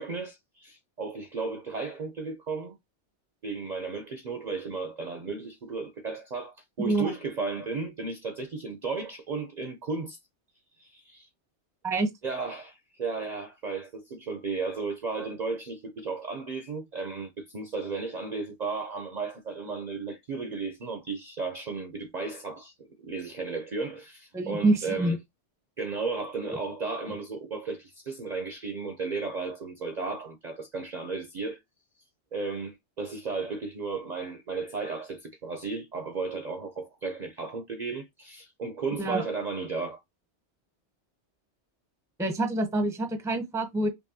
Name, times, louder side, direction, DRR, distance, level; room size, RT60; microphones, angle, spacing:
voice 1, 0.0-2.8 3.4-10.2 10.8-11.3 12.2-25.2 25.8-31.6 32.3-40.0, right 4 dB, 50° right, 0.6 m, -34 dB
voice 2, 24.3-25.2 39.0-39.2 42.2-43.9, right 2 dB, 5° right, 0.6 m, -26 dB
5.4 x 2.1 x 2.7 m
omnidirectional pair, 1.2 m